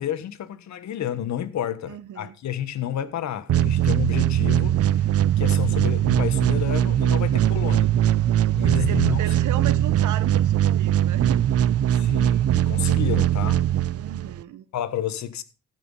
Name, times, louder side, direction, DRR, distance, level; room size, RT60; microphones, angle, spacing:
voice 1, 0.0-5.0 5.4-7.9 8.5-9.2 11.9-13.7 14.7-15.4, left 10 dB, 65° left, 1.4 m, -30 dB
voice 2, 1.9-2.4 7.3-7.8 8.7-11.4 13.9-14.7, right 11 dB, 80° right, 1.1 m, -35 dB
sound 1, 3.5-14.4, right 11 dB, 50° right, 0.6 m, -21 dB
15.5 x 6.1 x 5.5 m
cardioid pair, 90°, 30 cm